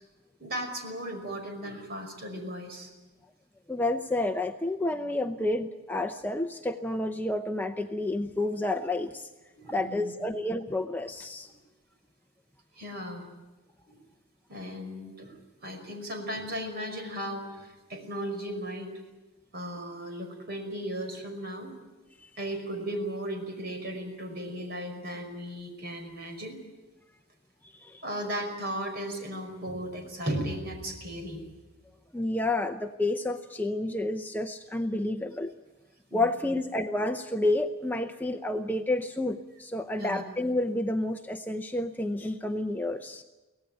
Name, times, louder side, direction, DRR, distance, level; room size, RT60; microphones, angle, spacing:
voice 1, 0.4-2.9 9.6-10.3 11.5-11.6 12.8-13.3 13.9-14.0 14.5-19.0 19.5-21.7 22.4-26.6 28.0-31.4 36.1-36.3 40.0-40.2, equal, 45° right, 4 dB, 5.4 m, -36 dB
voice 2, 3.7-9.3 9.7-11.5 22.2-22.3 27.6-28.0 32.1-35.5 36.1-43.2, left 2 dB, 10° left, 6 dB, 0.7 m, -30 dB
24.0 x 17.5 x 9.2 m, 1.1 s
head